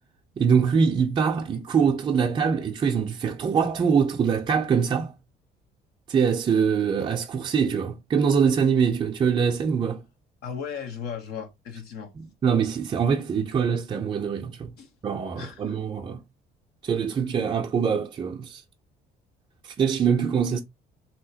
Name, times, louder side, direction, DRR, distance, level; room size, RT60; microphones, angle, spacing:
voice 1, 0.4-5.1 6.1-10.0 12.2-14.7 15.0-16.2 16.8-18.6 19.6-20.6, right 6 dB, 30° right, 0.4 m, -23 dB
voice 2, 10.4-12.1 14.8-14.9 15.4-15.8, left 7 dB, 75° left, 0.8 m, -36 dB
3.0 x 2.8 x 2.7 m
cardioid pair, 110°, 17 cm